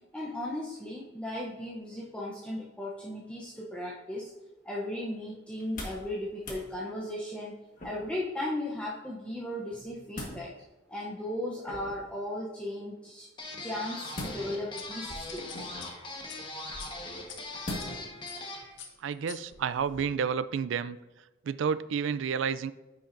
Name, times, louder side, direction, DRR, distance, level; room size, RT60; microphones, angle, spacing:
voice 1, 0.1-4.3 4.6-7.6 7.8-10.5 10.9-13.3 13.6-15.6, left 1 dB, 5° left, -5 dB, 0.7 m, -36 dB
sound 1, 5.5-6.1 6.4-6.7 7.8-8.2 9.7-10.4 11.6-12.1 14.1-14.7 15.5-16.0 17.6-18.1 18.6-18.7, left 1 dB, 40° left, 1.5 m, -40 dB
sound 2, 13.4-18.7, left 2 dB, 25° left, 1.2 m, -40 dB
sound 3, 14.8-17.9 18.3-18.5 18.8-20.0, left 5 dB, 65° left, 0.9 m, -47 dB
voice 2, 19.0-21.0 21.5-22.7, right 6 dB, 70° right, 15 dB, 0.3 m, -30 dB
9.8 x 5.9 x 2.6 m, 1.1 s
head